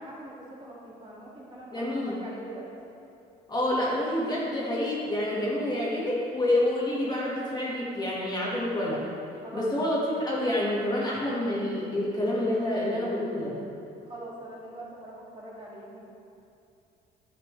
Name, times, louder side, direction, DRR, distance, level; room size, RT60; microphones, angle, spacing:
voice 1, 0.0-2.7 9.4-10.2 14.1-16.0, right 1 dB, 30° right, -5 dB, 1.9 m, -43 dB
voice 2, 1.7-2.1 3.5-9.0 9.5-13.6, left 1 dB, 25° left, -5 dB, 1.5 m, -28 dB
9.7 x 6.0 x 3.1 m, 2.7 s
cardioid pair, 110°, 17 cm